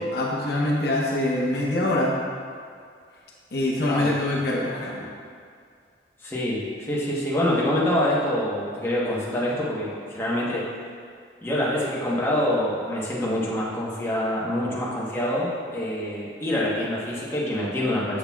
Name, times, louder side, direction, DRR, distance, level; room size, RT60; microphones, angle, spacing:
voice 1, 0.1-2.1 3.5-5.1, left 1 dB, 65° left, -4 dB, 0.9 m, -24 dB
voice 2, 6.2-10.7 11.4-18.2, left 1 dB, 15° left, -7 dB, 1.0 m, -26 dB
7.2 x 6.6 x 2.3 m, 2.2 s
head